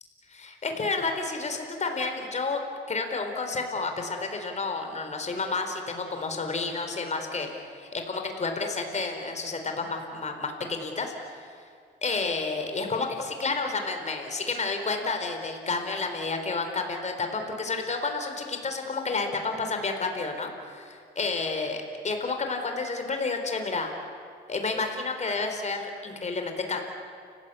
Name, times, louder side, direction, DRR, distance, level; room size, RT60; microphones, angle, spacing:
voice 1, 0.3-2.6 2.9-7.5 7.8-11.5 12.0-23.9 24.5-26.8, left 3 dB, 35° left, 5 dB, 4.1 m, -30 dB
30.0 x 16.0 x 8.4 m, 2.3 s
cardioid pair, 90°, 20 cm